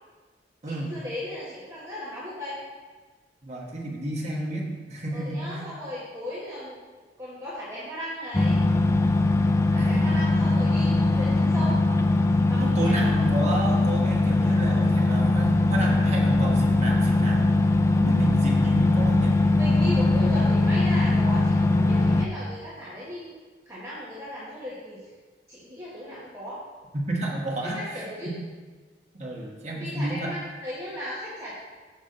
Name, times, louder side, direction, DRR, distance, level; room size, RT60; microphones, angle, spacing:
voice 1, 0.6-2.6 5.1-6.8 7.2-8.6 9.7-11.8 12.4-13.2 19.5-23.3 23.7-25.0 25.5-26.6 27.6-28.3 29.7-31.5, equal, 20° right, -9 dB, 1.4 m, -36 dB
voice 2, 3.4-5.6 9.7-10.6 12.6-17.5 18.0-19.3 27.1-28.4 29.1-30.3, right 1 dB, 40° right, -2 dB, 1.4 m, -31 dB
sound 1, 8.3-22.3, left 2 dB, 15° left, 0.3 m, -21 dB
6.8 x 6.2 x 3.9 m, 1.4 s
head